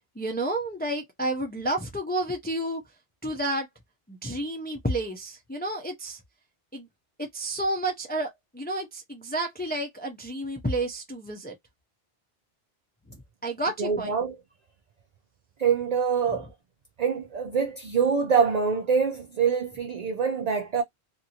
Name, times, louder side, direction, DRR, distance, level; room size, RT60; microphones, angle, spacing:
voice 1, 0.2-2.8 3.2-3.7 4.1-6.2 6.7-6.9 7.2-11.6 13.4-14.1, right 1 dB, 10° left, 0.5 m, -30 dB
voice 2, 13.8-14.4 15.6-16.5 17.0-20.8, right 6 dB, 50° right, 0.5 m, -25 dB
2.8 x 2.6 x 2.7 m
omnidirectional pair, 1.1 m